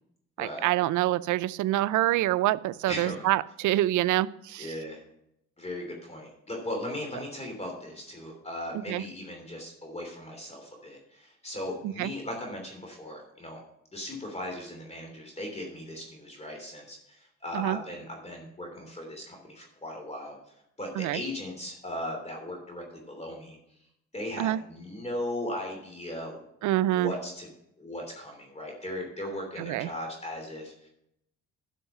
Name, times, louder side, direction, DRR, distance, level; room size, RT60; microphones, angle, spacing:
voice 1, 0.4-4.7 8.9-9.0 11.8-12.1 17.5-17.8 21.0-21.2 24.4-24.6 26.6-27.1 29.6-29.9, right 15 dB, 75° right, 17 dB, 0.5 m, -26 dB
voice 2, 2.9-3.3 4.6-5.0 5.6-13.6 13.9-20.4 20.8-23.6 24.1-26.4 26.9-27.5 27.8-30.9, left 1 dB, 20° left, 1 dB, 3.1 m, -38 dB
12.0 x 5.7 x 5.5 m, 0.78 s
cardioid pair, 90°, 30 cm